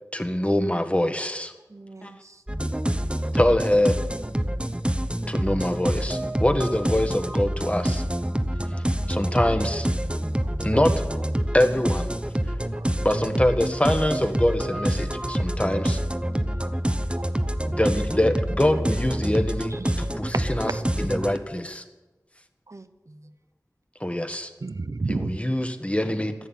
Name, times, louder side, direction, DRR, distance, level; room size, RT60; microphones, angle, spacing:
voice 1, 0.1-1.5 2.0-2.1 3.3-4.0 5.3-8.0 9.1-9.9 10.6-10.9 11.5-12.1 13.0-16.0 17.6-20.7 21.0-21.8 24.0-24.5 25.1-26.3, left 1 dB, 20° left, 7 dB, 1.5 m, -24 dB
voice 2, 1.7-2.4 16.2-16.6 19.7-20.1 22.7-23.4, right 2 dB, 50° right, 10 dB, 0.9 m, -47 dB
sound 1, 2.5-21.4, right 1 dB, 15° right, 1.0 m, -27 dB
voice 3, 16.6-17.5 19.8-19.9 20.3-20.8 24.6-25.4, right 3 dB, 70° right, 11 dB, 0.6 m, -32 dB
12.5 x 11.0 x 9.2 m, 1.1 s
wide cardioid pair, 50°, 7 cm